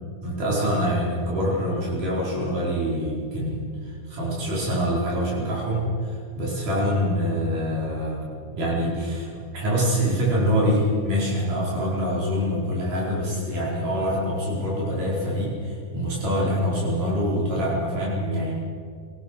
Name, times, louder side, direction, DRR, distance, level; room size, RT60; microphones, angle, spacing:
voice 1, 0.2-8.3 8.5-9.3 9.5-18.5, equal, 80° right, -5 dB, 6.3 m, -25 dB
24.5 x 19.0 x 6.5 m, 2.2 s
omnidirectional pair, 3.6 m